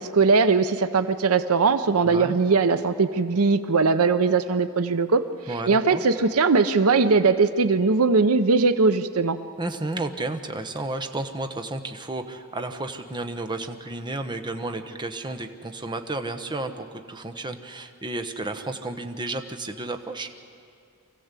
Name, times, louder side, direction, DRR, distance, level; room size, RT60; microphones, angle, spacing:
voice 1, 0.0-5.3 5.7-9.4, right 4 dB, 70° right, 11 dB, 0.7 m, -20 dB
voice 2, 2.0-2.4 5.5-6.0 9.6-20.3, right 2 dB, 20° right, 6 dB, 1.0 m, -32 dB
24.5 x 15.5 x 8.3 m, 2.4 s
head